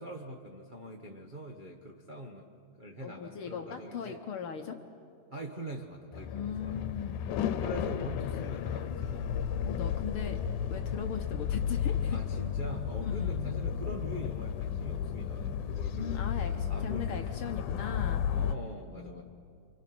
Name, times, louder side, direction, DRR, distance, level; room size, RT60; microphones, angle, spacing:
voice 1, 0.0-2.5 2.8-4.2 5.3-6.9 7.5-9.4 11.0-11.1 12.1-16.3 16.7-17.2 18.3-19.2, right 1 dB, 80° right, 0 dB, 0.4 m, -43 dB
voice 2, 3.0-4.8 6.3-7.2 9.6-10.4 10.7-12.2 13.0-13.4 15.9-18.2 18.9-19.2, left 7 dB, 60° left, 5 dB, 1.5 m, -39 dB
sound 1, 6.1-18.5, left 8 dB, 85° left, 2.3 m, -33 dB
30.0 x 25.5 x 6.1 m, 2.4 s
omnidirectional pair, 3.5 m